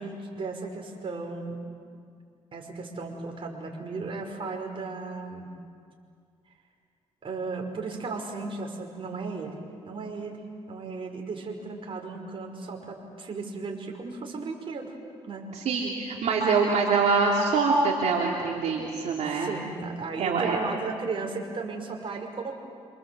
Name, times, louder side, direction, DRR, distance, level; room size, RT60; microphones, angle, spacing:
voice 1, 0.0-1.6 2.5-5.5 7.2-9.6 9.8-10.4 10.7-14.9 15.2-15.5 19.3-22.6, right 4 dB, 45° right, 2 dB, 5.4 m, -35 dB
voice 2, 15.5-19.5 20.2-20.6, right 4 dB, 70° right, -2 dB, 3.3 m, -24 dB
27.5 x 26.5 x 7.8 m, 2.2 s
cardioid pair, 80°, 12 cm